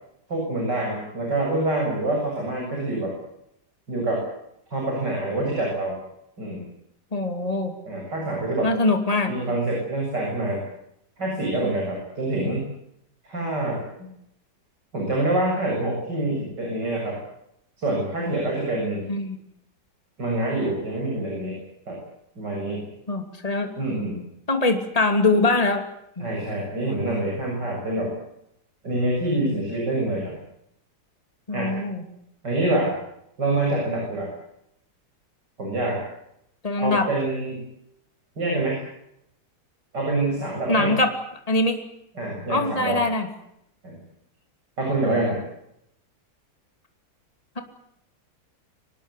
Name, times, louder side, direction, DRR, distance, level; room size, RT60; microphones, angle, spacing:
voice 1, 0.3-3.2 3.9-4.2 4.7-6.0 6.4-6.6 7.9-8.7 9.2-10.6 11.2-12.6 13.2-14.1 14.9-17.2 17.8-19.1 20.2-21.6 21.9-22.0 22.4-22.8 23.8-24.2 26.2-28.1 28.8-30.4 31.5-31.7 32.4-32.9 33.4-34.3 35.6-36.0 36.8-37.6 38.4-38.8 39.9-40.9 42.1-43.0 43.8-44.0 44.8-45.4, right 2 dB, 80° right, -1 dB, 8.2 m, -26 dB
voice 2, 7.1-7.7 8.6-9.3 19.1-19.4 23.1-23.7 24.5-25.8 26.2-26.3 29.4-29.6 31.5-32.0 36.6-37.1 40.7-41.1 41.5-41.8 42.5-43.3, left 2 dB, 20° left, 6 dB, 2.8 m, -22 dB
25.5 x 19.5 x 8.4 m, 0.78 s
omnidirectional pair, 1.8 m